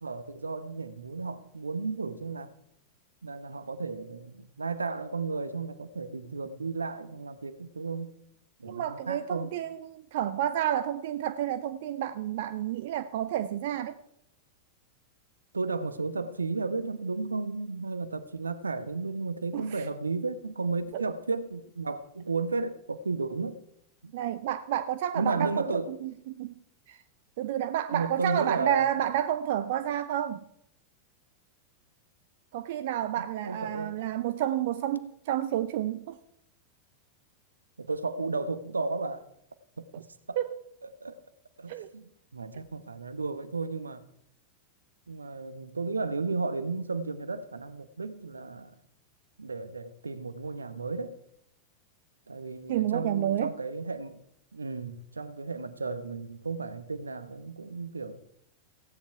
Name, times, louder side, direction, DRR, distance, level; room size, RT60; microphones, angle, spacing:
voice 1, 0.0-2.5 3.2-8.1 8.6-9.5 15.5-23.6 24.0-24.1 25.1-26.0 27.9-28.9 33.2-33.9 37.8-39.2 39.8-40.4 41.0-41.2 41.6-44.0 45.1-48.7 49.4-51.2 52.3-54.2 54.5-58.2, right 3 dB, 75° right, 1.0 m, -33 dB
voice 2, 8.6-14.0 19.5-19.9 20.9-21.0 24.1-26.5 26.9-27.0 27.4-30.4 32.5-36.2 40.4-40.6 41.7-41.9 52.7-53.5, right 11 dB, 55° right, 0.6 m, -30 dB
16.0 x 10.5 x 4.6 m
figure-of-eight pair, 90°, 0 cm